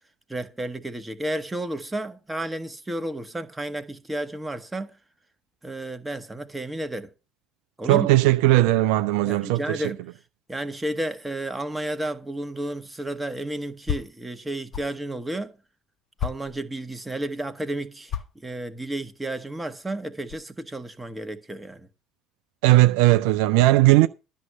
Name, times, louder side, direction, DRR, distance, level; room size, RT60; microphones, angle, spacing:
voice 1, 0.3-5.0 5.6-7.1 7.8-8.1 9.2-10.0 10.5-15.5 16.2-18.1 18.4-21.9, right 1 dB, 10° right, 1.5 m, -32 dB
voice 2, 7.8-9.8 22.6-24.1, right 17 dB, 65° right, 0.5 m, -18 dB
sound 1, 12.3-12.4 12.7-15.0 15.4-15.5 16.2-17.0 18.0-20.5, left 9 dB, 45° left, 1.8 m, -34 dB
12.5 x 6.3 x 6.8 m
figure-of-eight pair, 60°, 0 cm